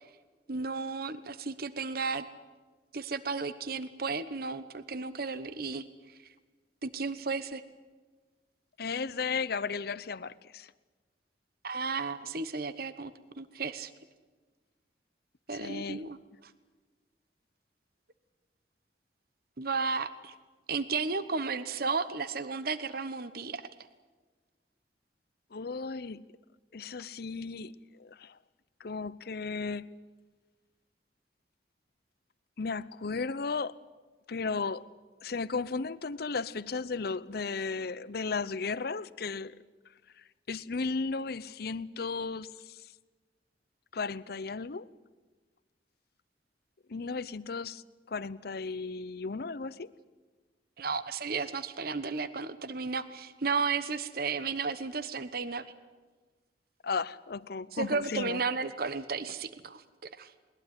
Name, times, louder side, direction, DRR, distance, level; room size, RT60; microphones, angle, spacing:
voice 1, 0.5-2.2 2.9-5.8 6.8-7.6 11.6-13.9 15.5-16.2 19.6-20.3 20.7-23.6 50.8-55.6 57.7-59.8 60.2-60.3, right 4 dB, 60° right, 1.1 m, -33 dB
voice 2, 8.8-10.7 15.5-16.1 25.5-26.2 26.7-28.4 28.8-29.9 32.6-33.8 34.3-34.8 35.2-39.6 40.2-42.9 43.9-44.9 46.9-49.9 56.8-58.4, left 4 dB, 60° left, 0.7 m, -35 dB
21.0 x 20.5 x 9.7 m
head